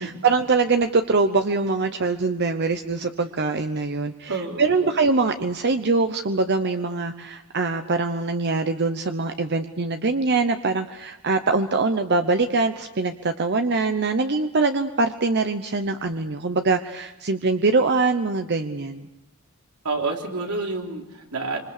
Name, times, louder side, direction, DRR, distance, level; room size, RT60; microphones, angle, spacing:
voice 1, 0.0-19.0, right 3 dB, 50° right, 7 dB, 0.9 m, -23 dB
voice 2, 4.3-4.9 19.8-21.6, right 3 dB, 85° right, 1 dB, 3.7 m, -29 dB
26.5 x 25.5 x 6.7 m, 0.94 s
head